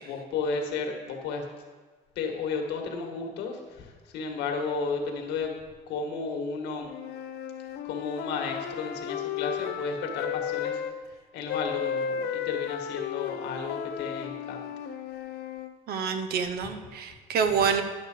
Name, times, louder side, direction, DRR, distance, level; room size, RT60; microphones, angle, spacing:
voice 1, 0.0-1.4 2.2-5.5 5.9-7.0 7.8-10.8 11.3-14.7, left 4 dB, 85° left, 2 dB, 1.8 m, -33 dB
sound 1, 6.8-11.0 11.5-15.7, left 8 dB, 70° left, 0.6 m, -34 dB
voice 2, 15.9-17.8, right 6 dB, 65° right, 7 dB, 1.0 m, -27 dB
11.0 x 6.7 x 5.1 m, 1.4 s
cardioid pair, 110°, 17 cm